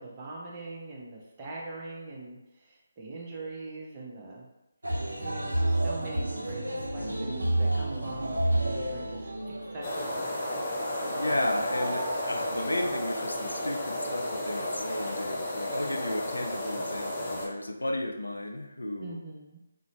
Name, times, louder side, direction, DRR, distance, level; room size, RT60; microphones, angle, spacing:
voice 1, 0.0-4.4 5.2-8.4 8.6-9.3 9.7-10.4 19.0-19.6, right 2 dB, 25° right, -4 dB, 0.7 m, -42 dB
sound 1, 4.8-12.9, right 1 dB, 85° right, 0.5 m, -31 dB
sound 2, 9.8-17.5, left 1 dB, 25° left, 0.6 m, -33 dB
voice 2, 11.0-19.2, left 1 dB, 85° left, 4 dB, 0.4 m, -33 dB
2.5 x 2.1 x 3.0 m, 0.96 s
figure-of-eight pair, 150°, 0 cm